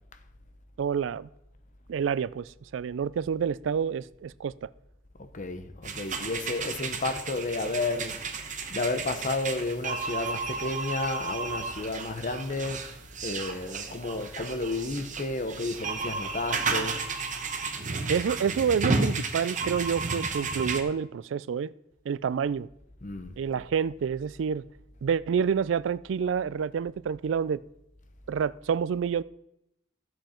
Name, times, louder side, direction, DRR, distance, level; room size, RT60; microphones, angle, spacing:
voice 1, 0.8-1.3 1.9-4.7 18.1-21.7 22.1-22.7 23.4-24.6 25.0-27.6 28.3-29.2, right 7 dB, 75° right, 0.3 m, -28 dB
voice 2, 5.2-12.8 13.2-17.0 23.0-23.3, left 2 dB, 40° left, 0.9 m, -32 dB
sound 1, 5.8-20.8, right 4 dB, 40° right, 1.0 m, -33 dB
13.5 x 7.8 x 4.4 m
head